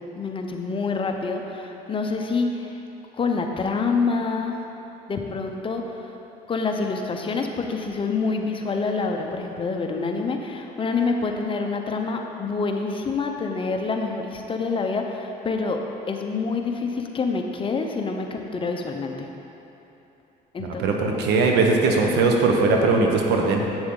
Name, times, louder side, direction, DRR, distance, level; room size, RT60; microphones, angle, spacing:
voice 1, 0.2-2.8 3.1-4.6 5.1-6.1 6.5-15.8 16.1-19.3 20.5-20.8, left 4 dB, 30° left, 3 dB, 0.7 m, -27 dB
voice 2, 20.6-23.6, right 3 dB, 80° right, 1 dB, 1.0 m, -20 dB
8.0 x 6.9 x 3.8 m, 2.9 s
cardioid pair, 110°, 17 cm